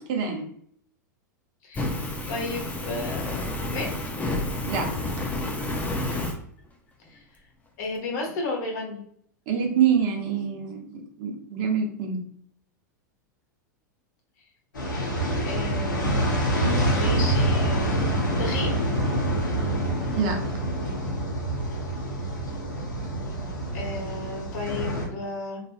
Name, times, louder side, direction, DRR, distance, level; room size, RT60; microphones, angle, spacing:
voice 1, 0.1-0.5 4.7-4.9 9.5-12.2 20.2-20.4, right 7 dB, 50° right, 2 dB, 0.8 m, -25 dB
voice 2, 1.6-3.3 3.7-3.9 7.1-7.2 7.8-9.0 15.4-16.5 16.9-18.0 18.4-18.8 23.7-25.6, left 3 dB, 60° left, 0 dB, 1.1 m, -33 dB
Fire, 1.7-6.3, left 2 dB, 15° left, 0.6 m, -30 dB
sound 1, 14.7-25.1, right 1 dB, 90° left, 1.0 m, -26 dB
3.2 x 2.5 x 2.4 m, 0.64 s
hypercardioid pair, 100°, 10 cm